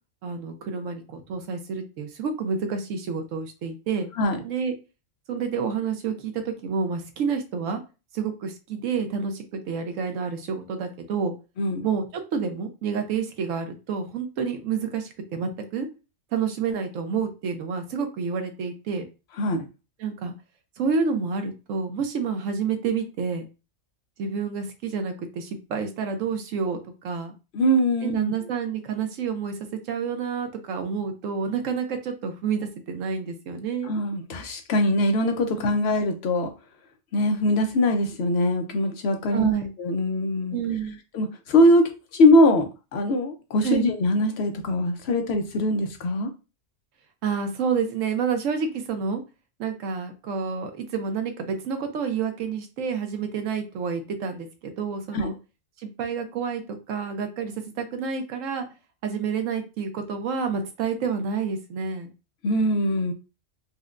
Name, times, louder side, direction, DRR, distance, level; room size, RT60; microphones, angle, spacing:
voice 1, 0.2-4.1 4.4-4.7 5.3-7.8 8.1-11.3 11.8-12.1 12.3-15.9 16.3-19.1 20.0-20.3 20.8-23.5 24.2-27.3 28.0-33.9 35.8-35.9 39.3-39.7 40.5-41.0 43.6-43.9 47.2-49.2 49.6-55.3 55.8-58.7 59.0-62.1, right 6 dB, 90° right, 1.1 m, -29 dB
voice 2, 11.6-11.9 19.4-19.7 27.5-28.3 33.8-36.5 37.1-39.5 39.8-40.6 41.1-42.7 42.9-46.3 55.1-55.3 62.4-63.1, left 1 dB, 65° left, 0.7 m, -22 dB
4.2 x 2.1 x 2.4 m
omnidirectional pair, 1.3 m